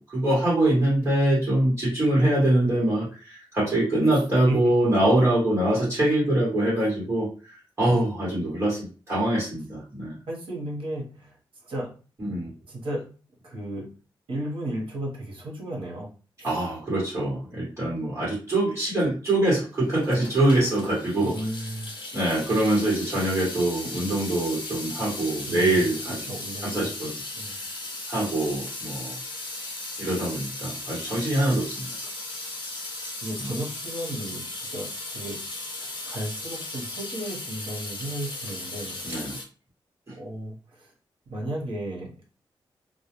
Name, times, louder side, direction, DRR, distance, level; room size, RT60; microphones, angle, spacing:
voice 1, 0.1-10.1 12.2-12.5 16.4-21.4 22.1-26.2 26.6-27.2 27.5-27.7 28.1-29.2 30.0-31.9 33.4-33.5 39.0-39.4, right 1 dB, 30° right, -8 dB, 1.0 m, -24 dB
voice 2, 10.3-11.4 11.6-12.0 12.7-13.1 13.4-13.9 14.3-16.1 16.4-16.6 21.2-21.9 25.4-25.9 26.3-26.9 27.4-27.6 33.2-34.4 34.7-35.4 35.8-39.0 40.2-40.9 41.3-42.1, right 1 dB, 75° right, -2 dB, 0.9 m, -34 dB
Water tap faucet / Sink (filling or washing) / Drip, 19.8-39.4, left 2 dB, 60° left, 0.9 m, -36 dB
2.2 x 2.1 x 2.8 m, 0.36 s
wide cardioid pair, 160°, 9 cm